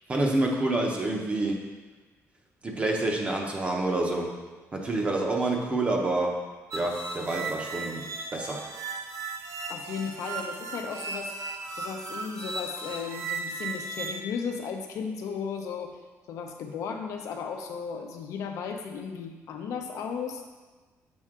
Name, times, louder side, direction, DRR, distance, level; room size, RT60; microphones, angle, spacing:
voice 1, 0.1-1.7 2.6-4.4 4.7-6.4 6.7-8.6, right 2 dB, 20° right, 1 dB, 0.8 m, -28 dB
sound 1, 6.7-14.2, right 3 dB, 75° right, 0.7 m, -36 dB
voice 2, 9.7-11.3 11.8-16.0 16.3-20.4, left 6 dB, 75° left, 3 dB, 0.7 m, -35 dB
6.2 x 5.5 x 3.7 m, 1.3 s
cardioid pair, 170°, 5 cm